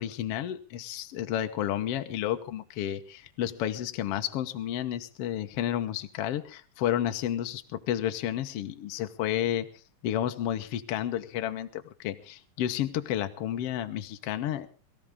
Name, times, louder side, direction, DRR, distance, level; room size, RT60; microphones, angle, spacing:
voice 1, 0.0-9.7 10.0-14.7, left 11 dB, 85° left, 8 dB, 1.3 m, -31 dB
23.0 x 14.5 x 3.6 m, 0.36 s
omnidirectional pair, 4.3 m